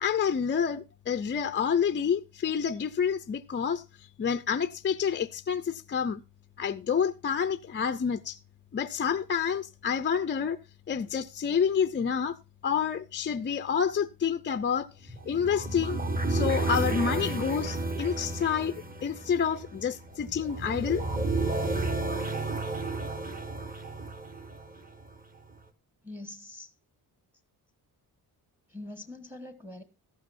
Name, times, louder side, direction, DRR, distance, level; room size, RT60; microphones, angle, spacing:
voice 1, 0.0-3.8 4.2-6.2 6.6-8.4 8.7-10.6 10.9-12.4 12.6-16.0 16.3-18.7 19.0-21.0, left 7 dB, 30° left, 0.5 m, -28 dB
sound 1, 15.1-25.2, right 2 dB, 25° right, 1.6 m, -32 dB
voice 2, 26.0-26.7 28.7-29.8, left 2 dB, 5° right, 1.3 m, -43 dB
14.0 x 12.0 x 2.6 m
cardioid pair, 145°, 38 cm